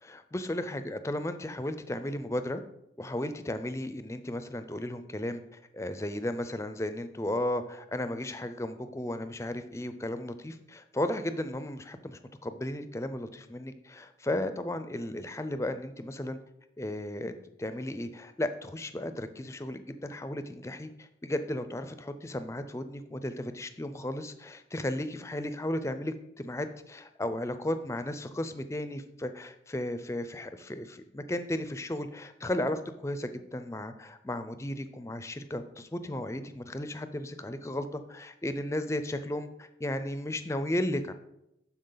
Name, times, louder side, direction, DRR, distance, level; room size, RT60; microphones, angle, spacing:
voice 1, 0.0-2.6 3.0-16.4 16.8-17.3 17.6-41.1, left 1 dB, 15° left, 10 dB, 0.4 m, -35 dB
12.0 x 4.4 x 3.9 m, 0.84 s
head